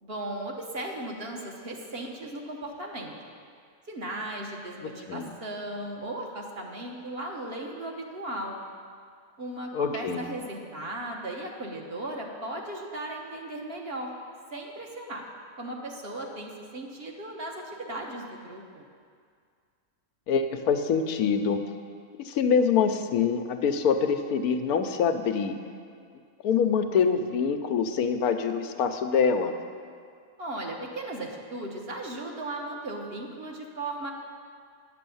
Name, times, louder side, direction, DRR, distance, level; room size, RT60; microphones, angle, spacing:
voice 1, 0.0-3.1 3.9-8.7 9.4-14.1 14.5-15.2 15.6-18.8 30.4-34.1, right 1 dB, 45° right, 0 dB, 1.2 m, -36 dB
voice 2, 4.8-5.3 9.7-10.3 20.3-21.6 22.2-25.6 26.4-29.6, left 6 dB, 90° left, 7 dB, 1.2 m, -25 dB
10.0 x 6.8 x 7.0 m, 2.2 s
omnidirectional pair, 1.5 m